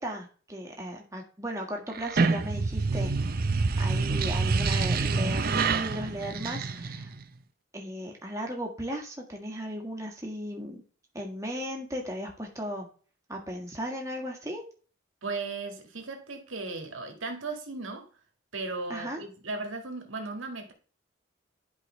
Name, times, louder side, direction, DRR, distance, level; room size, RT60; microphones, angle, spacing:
voice 1, 0.0-7.1 7.7-10.8 11.1-12.9 13.3-14.6 18.9-19.2, equal, 15° right, 1.6 m, -36 dB
sound 1, 1.9-7.2, right 4 dB, 45° right, 0.5 m, -27 dB
voice 2, 15.2-18.1 18.5-20.7, right 3 dB, 75° right, 1.8 m, -36 dB
11.0 x 4.8 x 3.2 m
head